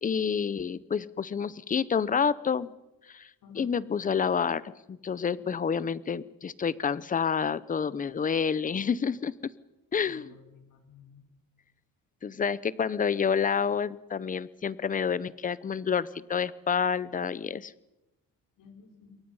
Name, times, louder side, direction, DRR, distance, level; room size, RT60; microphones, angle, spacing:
voice 1, 0.0-2.7 3.1-3.3 3.5-9.5 9.9-10.3 12.2-17.7, left 6 dB, 25° left, 19 dB, 0.7 m, -29 dB
voice 2, 3.4-3.9 5.4-5.5 10.0-11.2 18.6-19.2, left 5 dB, 65° left, 4 dB, 4.5 m, -53 dB
27.5 x 23.0 x 5.5 m, 0.98 s
cardioid pair, 145°, 35 cm